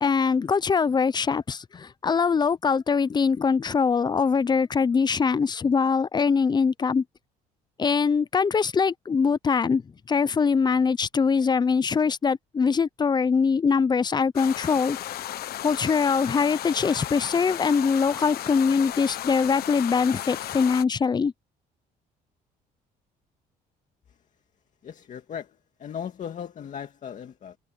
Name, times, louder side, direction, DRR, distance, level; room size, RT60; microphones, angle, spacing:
voice 1, 0.0-7.0 7.8-9.8 10.1-15.0 15.6-21.3, left 5 dB, 25° left, 0.6 m, -23 dB
sound 1, 14.4-20.8, left 13 dB, 65° left, 1.2 m, -34 dB
voice 2, 24.8-27.6, left 8 dB, 50° left, 2.1 m, -38 dB
cardioid pair, 110°, 17 cm